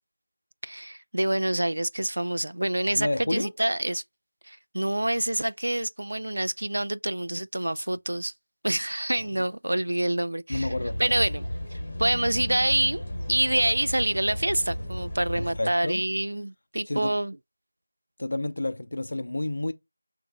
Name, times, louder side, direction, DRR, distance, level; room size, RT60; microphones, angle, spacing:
voice 1, 0.6-4.0 4.4-8.3 8.6-10.7 11.0-11.4 11.7-13.0 13.3-17.4, right 1 dB, 90° right, 0.3 m, -27 dB
voice 2, 2.9-3.5 9.2-9.3 10.5-11.3 15.3-16.0 16.9-17.2 18.2-19.7, left 2 dB, 50° left, 0.5 m, -30 dB
sound 1, 10.5-15.6, left 1 dB, 15° left, 1.1 m, -34 dB
6.1 x 2.5 x 2.2 m
figure-of-eight pair, 180°, 0 cm